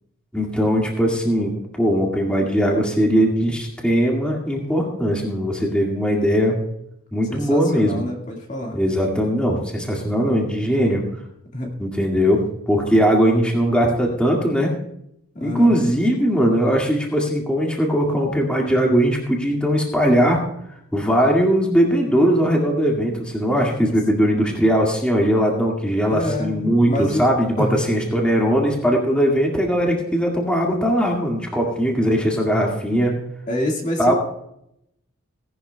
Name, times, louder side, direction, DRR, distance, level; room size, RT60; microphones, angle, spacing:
voice 1, 0.3-6.6 7.1-8.0 8.7-11.0 11.8-14.7 15.4-20.4 20.9-33.2 34.0-34.1, equal, 5° left, -1 dB, 2.0 m, -19 dB
voice 2, 7.3-8.8 11.5-11.7 15.3-15.8 26.1-27.3 27.6-27.8 33.5-34.1, left 1 dB, 35° left, 0 dB, 1.9 m, -26 dB
18.0 x 11.5 x 2.3 m, 0.77 s
head